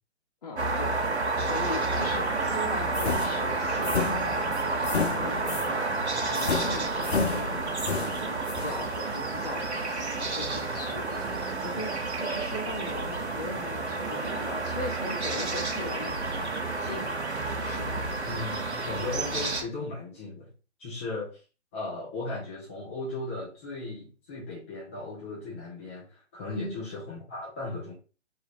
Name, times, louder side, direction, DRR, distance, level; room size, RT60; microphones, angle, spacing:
voice 1, 0.4-1.0 1.4-4.3 4.8-5.9 6.3-8.3 8.6-11.2 11.6-17.2 17.6-18.0 26.5-26.8, left 2 dB, 35° left, 2 dB, 0.8 m, -39 dB
sound 1, 0.6-19.6, right 3 dB, 75° right, 0.8 m, -30 dB
sound 2, 2.9-5.7 6.3-8.8, left 5 dB, 65° left, 0.7 m, -31 dB
voice 2, 18.2-20.5 20.8-21.4 21.7-27.9, left 2 dB, 10° left, -7 dB, 0.5 m, -37 dB
3.4 x 2.2 x 4.0 m, 0.34 s
figure-of-eight pair, 130°, 34 cm